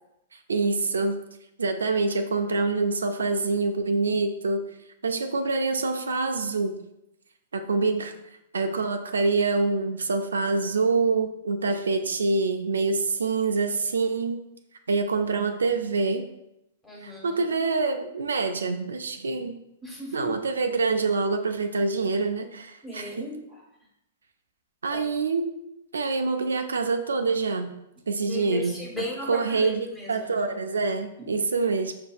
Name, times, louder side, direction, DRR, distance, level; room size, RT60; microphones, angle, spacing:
voice 1, 0.3-1.2 1.6-4.6 5.0-6.7 7.5-8.1 8.5-14.4 14.9-16.3 17.0-19.5 20.1-23.1 24.8-25.5 25.9-27.7 28.1-28.8 29.3-31.9, right 3 dB, 80° right, 6 dB, 0.3 m, -26 dB
voice 2, 16.8-17.4 19.8-20.3 22.8-23.6 24.9-25.1 28.3-30.5 31.2-31.3, left 2 dB, 10° left, -4 dB, 1.3 m, -37 dB
5.9 x 2.6 x 2.3 m, 0.85 s
hypercardioid pair, 115°, 0 cm